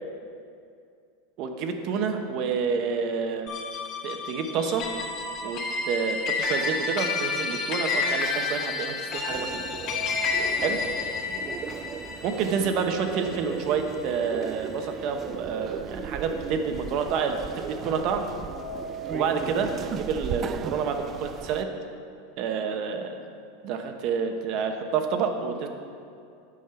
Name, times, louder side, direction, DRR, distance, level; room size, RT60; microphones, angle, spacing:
voice 1, 1.4-3.5 4.0-4.9 5.4-9.5 10.6-10.8 12.2-18.2 19.1-21.7 22.4-23.2 23.6-25.7, right 6 dB, 45° right, 5 dB, 1.0 m, -28 dB
sound 1, 3.5-14.1, left 4 dB, 45° left, 2.1 m, -30 dB
sound 2, 9.3-21.6, right 8 dB, 25° right, 0.3 m, -37 dB
sound 3, 9.6-13.6 14.0-14.1 15.0-15.1 15.5-19.4, equal, 75° left, 0.9 m, -43 dB
9.8 x 5.3 x 8.0 m, 2.4 s
supercardioid pair, 150°, 0 cm